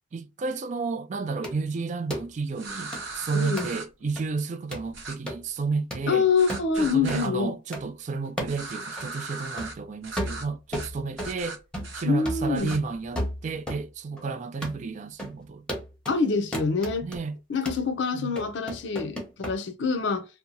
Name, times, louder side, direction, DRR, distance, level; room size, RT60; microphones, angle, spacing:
voice 1, 0.1-6.2 6.8-11.6 11.9-15.7 17.0-17.4 18.1-18.4, right 4 dB, 40° right, 0.3 m, -31 dB
sound 1, 1.4-1.6 2.1-2.3 2.9-3.0 3.6-3.7 4.2-4.3 4.7-4.9 5.3-5.4 5.9-6.1 6.5-6.7 7.1-7.2 7.7-7.8 8.4-8.6 9.0-9.1 9.6-9.8 10.2-11.4 11.7-12.0 12.3-13.9 14.2-14.3 14.6-14.8 15.2-15.4 15.7-16.2 16.5-17.2 17.7-17.9 18.4-19.6, equal, 5° left, 0.8 m, -34 dB
sound 2, 2.6-3.9 4.9-5.2 6.4-7.3 8.4-9.7 10.0-10.5 10.7-10.9 11.2-12.0 12.5-12.8, right 3 dB, 80° right, 0.8 m, -38 dB
voice 2, 3.3-3.7 6.1-7.5 12.0-12.8 16.1-17.1 17.5-20.3, left 5 dB, 65° left, 0.5 m, -26 dB
2.8 x 2.2 x 2.6 m
head